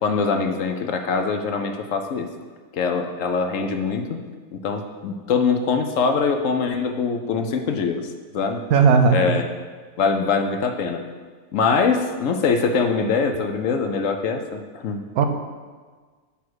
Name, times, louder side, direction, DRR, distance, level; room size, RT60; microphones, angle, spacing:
voice 1, 0.0-2.3 2.7-4.2 4.5-8.0 8.3-8.6 9.1-9.5 10.0-11.0 11.5-15.0, left 5 dB, 65° left, 5 dB, 1.0 m, -23 dB
voice 2, 8.7-9.3 15.2-15.3, right 5 dB, 80° right, 7 dB, 1.1 m, -16 dB
9.4 x 3.5 x 6.1 m, 1.5 s
omnidirectional pair, 1.5 m